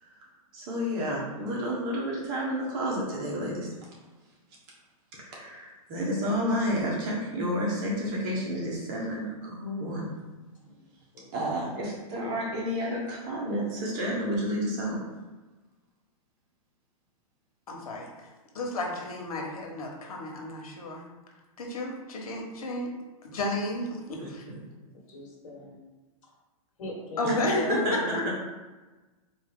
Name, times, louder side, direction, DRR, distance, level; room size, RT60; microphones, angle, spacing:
voice 1, 0.5-3.7 5.2-10.1 11.3-15.0 24.2-24.3 27.2-27.4 27.7-28.3, equal, 40° right, -3 dB, 1.4 m, -30 dB
voice 2, 8.0-8.4 10.6-10.7 11.1-11.3 24.9-25.8 26.8-28.3, left 1 dB, 55° left, -4 dB, 1.3 m, -39 dB
voice 3, 17.7-18.1 18.5-21.0 21.6-22.9 23.2-24.4 27.2-28.2, left 1 dB, 80° left, 0 dB, 1.1 m, -32 dB
4.0 x 2.7 x 3.6 m, 1.2 s
hypercardioid pair, 135°, 19 cm